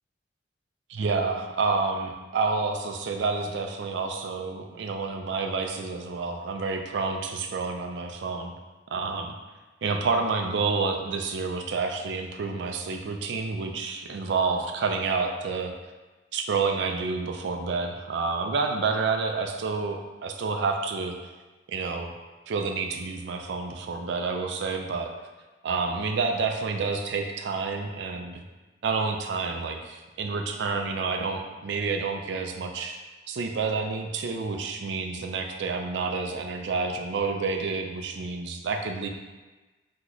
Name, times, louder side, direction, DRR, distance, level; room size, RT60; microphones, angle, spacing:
voice 1, 0.9-8.5 8.9-9.3 9.8-15.7 16.3-21.3 21.7-22.1 22.5-25.1 25.6-28.4 28.8-33.0 33.3-39.1, right 4 dB, 65° right, 4 dB, 0.3 m, -29 dB
3.0 x 2.2 x 3.8 m, 1.2 s
head